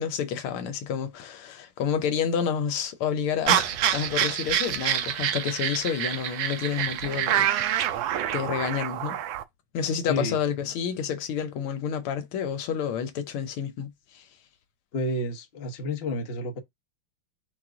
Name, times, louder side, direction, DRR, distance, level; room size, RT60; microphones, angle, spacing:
voice 1, 0.0-8.0 8.3-9.2 9.7-13.9 14.1-14.2, left 7 dB, 85° left, 1.7 m, -29 dB
sound 1, 3.5-9.4, right 11 dB, 75° right, 1.2 m, -27 dB
voice 2, 10.1-10.4 14.9-16.6, left 1 dB, 50° left, 0.7 m, -30 dB
4.4 x 2.4 x 4.8 m
omnidirectional pair, 2.3 m